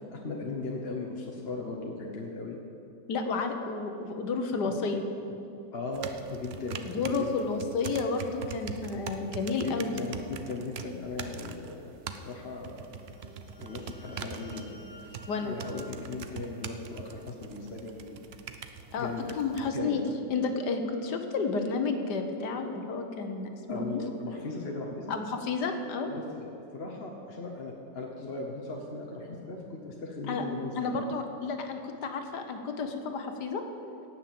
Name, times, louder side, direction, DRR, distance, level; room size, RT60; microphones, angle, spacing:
voice 1, 0.1-2.6 5.7-7.5 9.6-11.8 12.2-12.9 13.6-14.8 15.4-18.3 19.0-19.3 19.7-20.0 23.7-25.1 26.1-30.8, left 3 dB, 40° left, 0 dB, 1.1 m, -38 dB
voice 2, 3.1-5.0 6.8-10.0 15.3-15.5 18.9-20.0 20.3-24.0 25.1-26.1 30.3-30.4 30.8-33.6, left 4 dB, 65° left, 6 dB, 1.6 m, -31 dB
sound 1, 5.9-19.7, right 6 dB, 70° right, 0.6 m, -43 dB
sound 2, 12.8-17.3, equal, 20° left, 1.5 m, -54 dB
17.5 x 6.4 x 7.7 m, 2.7 s
omnidirectional pair, 1.9 m